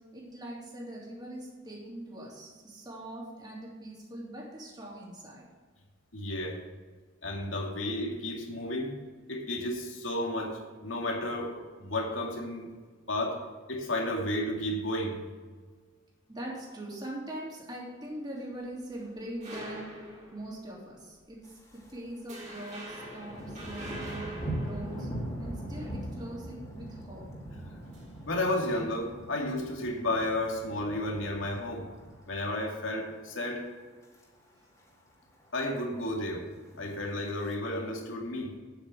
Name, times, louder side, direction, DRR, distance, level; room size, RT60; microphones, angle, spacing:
voice 1, 0.1-5.5 16.3-19.9 20.3-21.4 21.7-24.3 24.6-25.1 25.4-27.3, right 1 dB, 20° right, -4 dB, 3.0 m, -42 dB
voice 2, 6.1-6.6 7.2-8.9 9.3-12.7 13.1-13.4 13.7-15.2 28.3-31.9 32.3-33.6 35.5-36.5 36.8-38.5, left 1 dB, 85° left, 0 dB, 2.3 m, -32 dB
sound 1, 18.6-20.8 21.2-21.4 21.8-22.0 22.3-25.8 27.8-28.8, right 1 dB, 40° right, 3.4 m, -44 dB
Thunder, 21.4-22.0 22.3-32.6 33.0-33.3 33.8-34.2 34.5-34.6 34.8-34.9 35.2-35.8 36.6-37.5, right 1 dB, 15° left, 2.3 m, -41 dB
9.2 x 8.4 x 6.5 m, 1.4 s
head